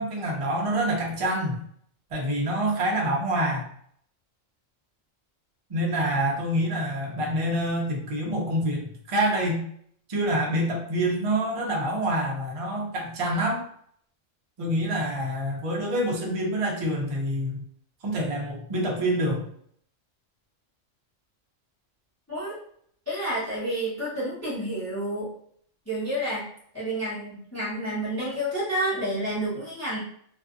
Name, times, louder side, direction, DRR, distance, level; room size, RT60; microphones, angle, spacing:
voice 1, 0.0-1.6 2.1-3.6 5.7-9.6 10.1-13.6 14.6-17.6 18.0-19.5, right 1 dB, 45° right, -1 dB, 0.4 m, -26 dB
voice 2, 23.1-25.3 25.9-26.5 26.7-30.0, right 1 dB, 15° left, -9 dB, 0.7 m, -29 dB
2.5 x 2.4 x 2.4 m, 0.64 s
omnidirectional pair, 1.3 m